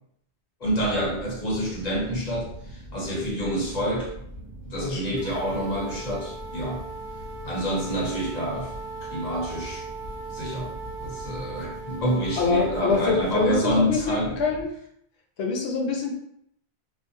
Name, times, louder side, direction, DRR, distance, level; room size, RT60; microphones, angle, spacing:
voice 1, 0.6-4.1 4.6-6.8 7.4-8.7 9.1-9.9 10.3-10.7 11.0-14.4, equal, 45° left, -3 dB, 0.7 m, -28 dB
sound 1, 0.6-14.7, equal, 15° right, 1.0 m, -42 dB
voice 2, 4.8-5.2 12.4-14.7 15.4-16.1, left 4 dB, 80° left, 0 dB, 0.9 m, -25 dB
sound 2, 5.2-13.7, right 2 dB, 60° right, 0.3 m, -39 dB
2.5 x 2.0 x 2.6 m, 0.72 s
omnidirectional pair, 1.1 m